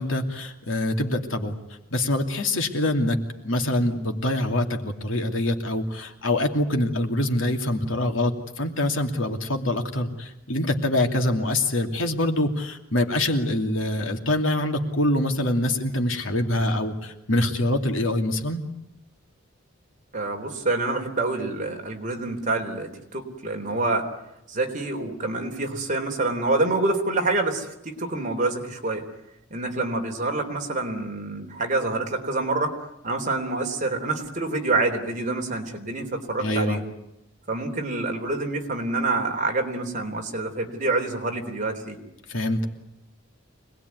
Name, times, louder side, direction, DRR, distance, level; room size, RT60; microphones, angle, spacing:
voice 1, 0.0-1.5 1.9-3.2 3.4-18.6 36.4-36.8 42.3-42.7, left 1 dB, 75° left, 4 dB, 2.8 m, -25 dB
voice 2, 20.1-24.1 24.5-29.1 29.5-32.7 33.0-36.8 37.5-42.0, right 2 dB, 40° right, 3 dB, 3.7 m, -27 dB
26.0 x 20.0 x 9.5 m, 0.85 s
head